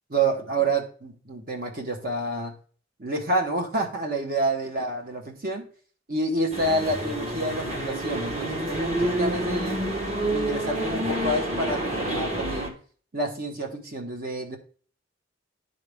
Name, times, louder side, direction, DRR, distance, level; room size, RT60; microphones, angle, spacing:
voice 1, 0.1-2.5 3.0-5.6 6.1-9.8 10.2-12.8 13.1-14.6, right 2 dB, 50° right, 2 dB, 1.1 m, -28 dB
sound 1, 6.5-12.7, right 1 dB, 35° right, 1.4 m, -28 dB
11.5 x 4.0 x 3.5 m, 0.43 s
head